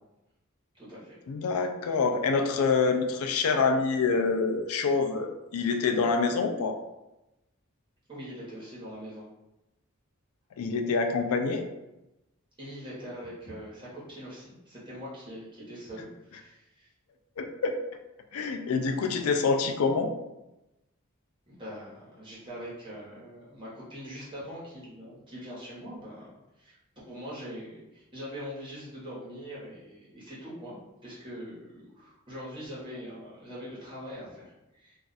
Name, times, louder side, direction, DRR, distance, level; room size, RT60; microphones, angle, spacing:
voice 1, 0.7-1.1 8.1-9.3 12.6-16.9 21.5-26.8 27.1-30.8 31.0-35.0, equal, 20° right, -8 dB, 1.1 m, -42 dB
voice 2, 1.3-6.8 10.6-11.6 17.4-17.7 18.3-20.1, left 4 dB, 80° left, 5 dB, 0.4 m, -26 dB
2.4 x 2.4 x 4.0 m, 0.95 s
head